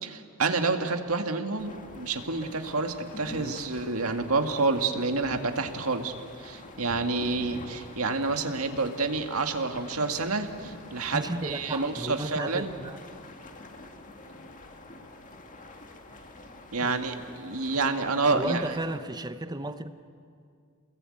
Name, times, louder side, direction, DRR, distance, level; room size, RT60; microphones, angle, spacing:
voice 1, 0.0-6.1 6.4-12.7 16.7-18.7, right 3 dB, 80° right, 1.9 m, -28 dB
sound 1, 1.6-19.0, left 2 dB, 40° left, 2.0 m, -46 dB
voice 2, 3.3-3.6 11.1-13.0 16.8-17.0 18.3-20.0, right 2 dB, 20° right, 0.8 m, -34 dB
28.5 x 21.5 x 8.6 m
head